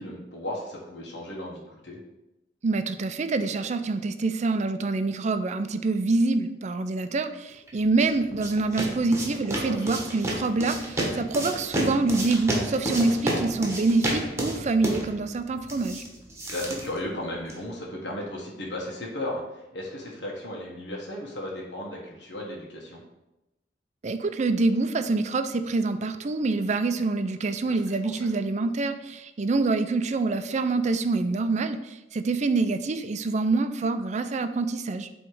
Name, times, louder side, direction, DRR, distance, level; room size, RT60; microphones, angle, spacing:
voice 1, 0.0-2.0 9.5-9.9 16.5-23.0 27.7-27.8 28.0-28.3, left 1 dB, 85° left, -3 dB, 1.3 m, -35 dB
voice 2, 2.6-16.0 24.0-35.1, right 3 dB, 40° right, 9 dB, 0.4 m, -26 dB
sound 1, 7.7-17.7, right 1 dB, 15° right, 1.3 m, -31 dB
7.7 x 3.2 x 4.8 m, 0.94 s
head